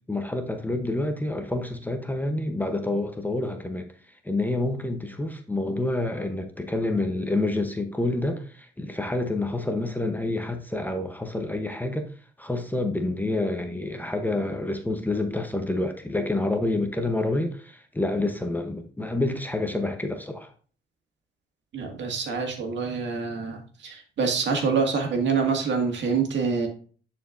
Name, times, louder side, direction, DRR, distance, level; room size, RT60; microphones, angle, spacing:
voice 1, 0.1-3.9 4.2-12.1 12.4-20.5, left 2 dB, 10° left, 0.8 m, -28 dB
voice 2, 21.7-26.7, right 5 dB, 65° right, 1.8 m, -26 dB
9.9 x 4.4 x 2.5 m
cardioid pair, 90°, 20 cm